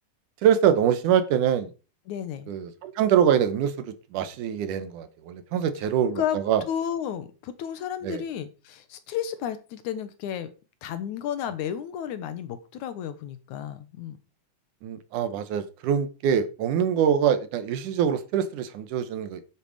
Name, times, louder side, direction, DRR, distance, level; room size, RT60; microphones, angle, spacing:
voice 1, 0.4-1.7 2.5-6.6 8.0-8.2 14.8-19.4, right 8 dB, 85° right, 12 dB, 2.6 m, -24 dB
voice 2, 2.1-2.5 6.2-6.4 6.7-10.5 10.8-14.2, left 9 dB, 80° left, 11 dB, 2.5 m, -32 dB
9.8 x 8.3 x 5.0 m, 0.33 s
omnidirectional pair, 3.5 m